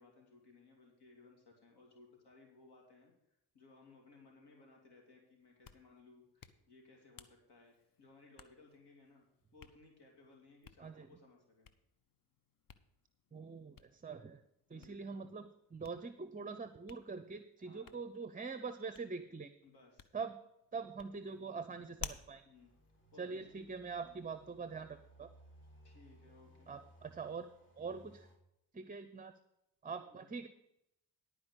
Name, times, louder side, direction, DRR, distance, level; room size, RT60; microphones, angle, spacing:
voice 1, 0.0-3.1 3.5-9.2 9.5-11.7 14.7-15.1 17.6-18.0 19.6-20.1 22.4-22.7 23.1-23.7 24.0-24.3 25.8-26.7 30.0-30.3, left 3 dB, 65° left, 0 dB, 2.8 m, -62 dB
Hands, 5.4-23.9, left 6 dB, 50° left, 0.9 m, -57 dB
voice 2, 13.3-14.4 14.7-19.5 20.1-20.4 20.7-22.4 23.2-25.3 26.7-27.5 27.8-28.3 28.7-29.3 29.8-30.5, right 5 dB, 20° right, 11 dB, 0.6 m, -44 dB
sound 1, 22.5-28.4, right 1 dB, 30° left, 3.0 m, -63 dB
11.5 x 4.9 x 8.0 m, 0.84 s
supercardioid pair, 60°, 42 cm